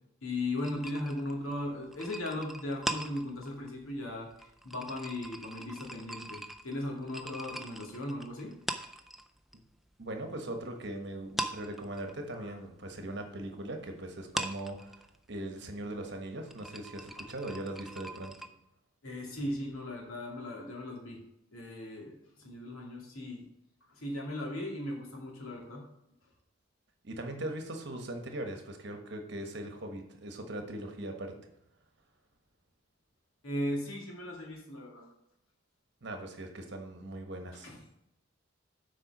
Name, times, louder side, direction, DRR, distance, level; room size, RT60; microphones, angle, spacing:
voice 1, 0.2-4.3 4.6-8.5 12.4-12.5 19.0-21.2 21.5-23.4 24.0-25.8 33.4-35.1 37.6-37.8, left 1 dB, 85° left, 0 dB, 2.4 m, -37 dB
sound 1, 0.6-9.6 9.9-10.9 11.2-18.5, right 1 dB, ahead, 0.3 m, -41 dB
voice 2, 10.0-15.0 15.3-18.3 27.0-31.3 36.0-37.7, right 1 dB, 55° right, 4 dB, 1.3 m, -40 dB
7.7 x 4.9 x 6.0 m, 0.82 s
head